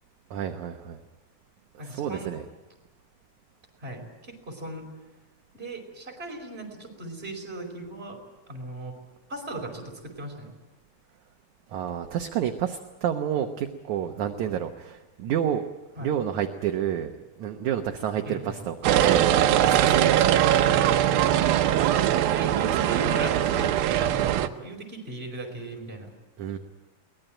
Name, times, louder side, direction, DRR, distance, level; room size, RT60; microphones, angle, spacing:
voice 1, 0.3-1.0 1.8-2.4 11.7-15.6 16.0-17.1 17.4-20.6 26.4-26.6, right 9 dB, 65° right, 5 dB, 2.2 m, -29 dB
voice 2, 1.8-2.3 3.8-4.9 5.5-8.2 8.5-9.0 9.3-10.5 16.0-16.2 18.2-18.6 20.7-20.9 21.7-26.1, right 2 dB, 15° right, 1 dB, 4.9 m, -37 dB
sound 1, 18.8-24.5, right 11 dB, 85° right, 2.7 m, -21 dB
23.0 x 19.5 x 9.0 m, 1.1 s
omnidirectional pair, 4.1 m